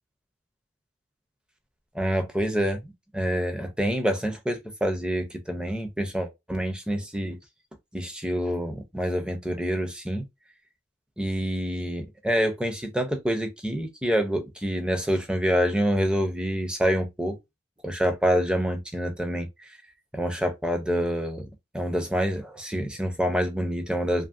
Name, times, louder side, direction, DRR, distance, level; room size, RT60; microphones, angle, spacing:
voice 1, 1.9-2.8 3.1-7.4 7.9-10.2 11.2-17.4 17.8-19.7 20.1-21.5 21.7-24.3, equal, 5° right, 0.4 m, -27 dB
2.7 x 2.6 x 2.4 m
head